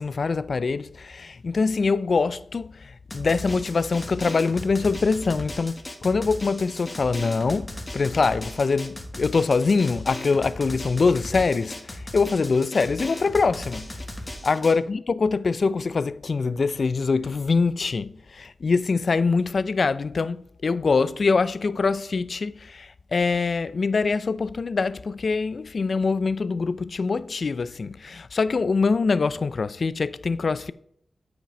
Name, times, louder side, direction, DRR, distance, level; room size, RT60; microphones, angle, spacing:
voice 1, 0.0-5.7 6.0-13.9 14.4-30.7, left 4 dB, 60° left, 0.4 m, -24 dB
Drum, 3.1-14.7, left 1 dB, 30° left, 1.5 m, -37 dB
9.0 x 5.1 x 4.9 m
cardioid pair, 50°, 0 cm